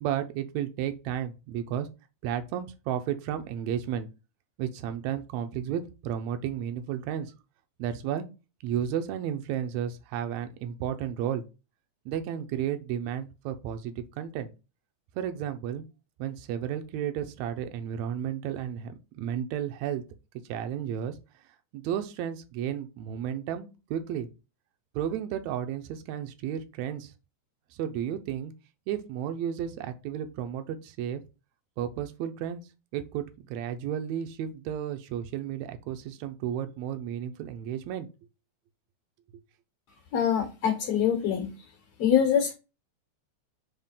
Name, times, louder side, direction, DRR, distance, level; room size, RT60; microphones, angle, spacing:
voice 1, 0.0-1.9 2.2-4.1 4.6-7.3 7.8-8.3 8.6-11.4 12.1-14.5 15.2-15.8 16.2-20.0 20.5-21.2 21.7-24.3 24.9-27.1 27.7-28.5 28.9-31.2 31.8-32.6 32.9-38.1, right 9 dB, 80° right, 1.9 m, -33 dB
voice 2, 40.1-41.5 42.0-42.5, left 8 dB, 65° left, 2.1 m, -24 dB
4.9 x 3.6 x 5.6 m
omnidirectional pair, 3.3 m